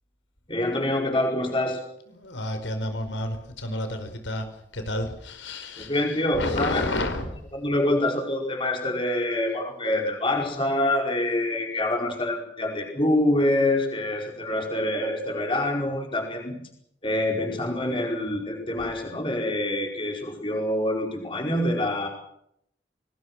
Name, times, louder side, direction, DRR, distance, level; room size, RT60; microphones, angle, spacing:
voice 1, 0.5-1.8 5.8-6.8 7.5-16.6 17.0-22.1, left 1 dB, 30° left, 1 dB, 5.0 m, -26 dB
voice 2, 2.1-4.5 4.7-6.0 6.4-7.3, left 1 dB, 90° left, 8 dB, 4.9 m, -30 dB
28.5 x 20.0 x 6.3 m, 0.73 s
head